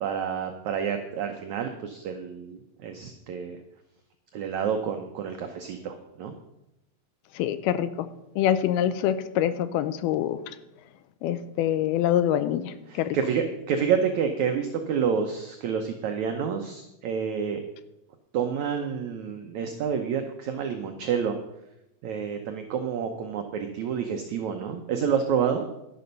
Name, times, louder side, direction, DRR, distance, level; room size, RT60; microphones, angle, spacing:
voice 1, 0.0-3.6 4.3-6.3 12.9-17.6 18.3-21.4 22.0-25.7, right 7 dB, 85° right, 5 dB, 1.6 m, -29 dB
voice 2, 7.4-8.1 8.4-10.4 11.2-13.2, left 11 dB, 80° left, 14 dB, 2.5 m, -25 dB
11.5 x 11.0 x 5.4 m, 0.89 s
omnidirectional pair, 4.6 m